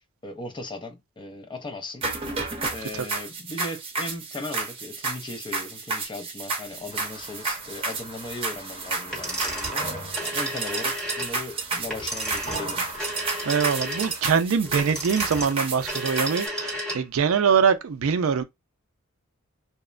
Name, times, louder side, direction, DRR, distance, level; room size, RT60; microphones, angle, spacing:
voice 1, 0.2-2.1 2.7-9.8 10.2-12.9, left 2 dB, 20° left, 0.4 m, -37 dB
sound 1, 2.0-16.5, right 3 dB, 25° right, 0.7 m, -32 dB
sound 2, 6.9-14.3, right 1 dB, 40° left, 0.9 m, -40 dB
sound 3, 9.1-17.2, right 1 dB, 5° left, 1.0 m, -33 dB
voice 2, 13.4-18.4, right 6 dB, 70° right, 0.4 m, -23 dB
2.9 x 2.1 x 2.4 m
head